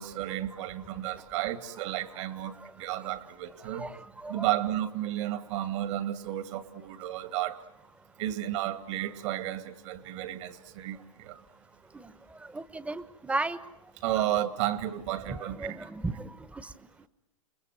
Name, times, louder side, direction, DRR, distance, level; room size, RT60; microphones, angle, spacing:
voice 1, 0.0-3.9 4.3-7.6 8.2-11.4 14.0-15.9, right 13 dB, 60° right, 11 dB, 2.2 m, -32 dB
voice 2, 12.5-13.6 15.3-16.3, right 2 dB, 5° right, 16 dB, 1.0 m, -34 dB
29.5 x 21.0 x 9.2 m, 0.90 s
hypercardioid pair, 115°, 17 cm